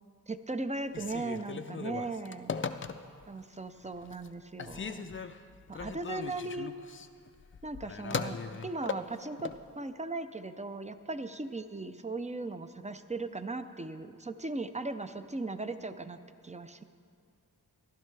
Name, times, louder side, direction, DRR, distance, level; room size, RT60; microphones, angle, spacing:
voice 1, 0.3-2.6 3.3-5.1 5.7-6.8 7.6-9.5 9.8-16.2 16.4-16.8, right 3 dB, 20° right, 10 dB, 0.4 m, -38 dB
Telephone, 0.9-3.3 3.8-4.3 4.6-9.6, left 5 dB, 35° left, 0.4 m, -38 dB
15.0 x 11.5 x 3.3 m, 2.3 s
wide cardioid pair, 75°, 35 cm